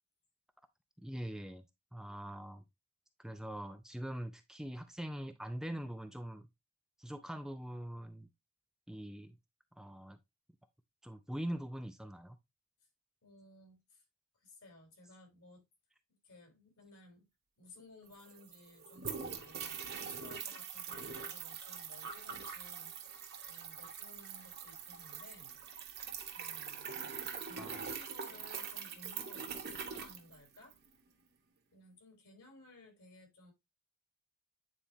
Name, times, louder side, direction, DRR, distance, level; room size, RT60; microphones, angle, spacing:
voice 1, 1.0-1.6 1.9-2.6 3.2-6.5 7.0-8.3 8.9-9.4 9.8-10.2 11.0-12.4 27.6-27.8, right 1 dB, ahead, 0.4 m, -43 dB
voice 2, 13.2-14.0 14.3-15.6 16.2-17.3 17.6-23.1 23.4-25.6 26.0-26.1 26.3-30.8 31.7-33.5, left 2 dB, 70° left, 3.3 m, -58 dB
sound 1, 17.8-17.9 18.1-30.9, right 6 dB, 45° right, 1.1 m, -43 dB
9.0 x 4.1 x 2.7 m
head